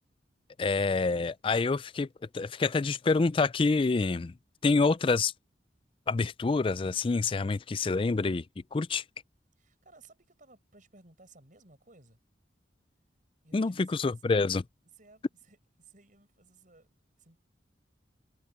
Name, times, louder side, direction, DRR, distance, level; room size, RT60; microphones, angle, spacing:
voice 1, 0.6-2.1 2.3-4.3 4.6-5.3 6.1-8.4 8.7-9.0 13.5-14.6, left 3 dB, 30° left, 0.4 m, -27 dB
voice 2, 9.6-12.2 13.4-14.2 14.9-16.9 17.2-17.4, right 3 dB, 45° right, 6.8 m, -58 dB
head